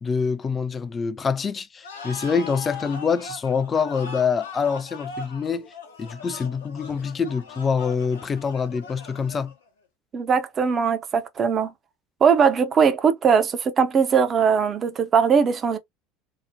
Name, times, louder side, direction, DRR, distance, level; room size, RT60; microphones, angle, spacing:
voice 1, 0.0-5.7 6.0-9.5, left 5 dB, 30° left, 0.4 m, -25 dB
sound 1, 1.8-9.7, left 4 dB, 90° left, 0.8 m, -40 dB
voice 2, 10.1-11.7 12.2-15.8, right 6 dB, 40° right, 0.6 m, -20 dB
2.9 x 2.0 x 2.6 m
hypercardioid pair, 75°, 0 cm